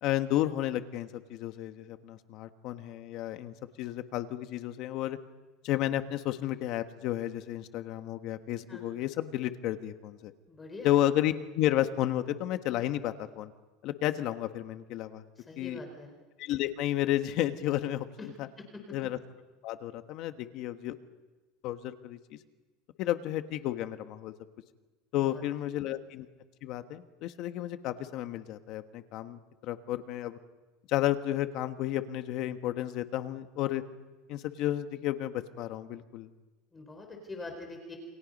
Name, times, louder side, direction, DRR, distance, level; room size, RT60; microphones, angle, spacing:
voice 1, 0.0-5.2 5.6-10.3 10.8-13.5 13.8-15.2 15.6-15.8 16.4-18.5 18.9-19.2 19.6-20.9 21.6-22.2 23.0-24.3 25.1-26.3 26.6-30.4 30.9-33.8 34.3-36.3, left 13 dB, 50° left, 9 dB, 1.4 m, -32 dB
voice 2, 10.5-10.9 15.5-16.1 18.2-18.3 25.1-25.4 36.7-38.0, left 3 dB, 15° left, 3 dB, 4.3 m, -43 dB
28.5 x 26.0 x 5.4 m, 1.2 s
supercardioid pair, 145°, 0 cm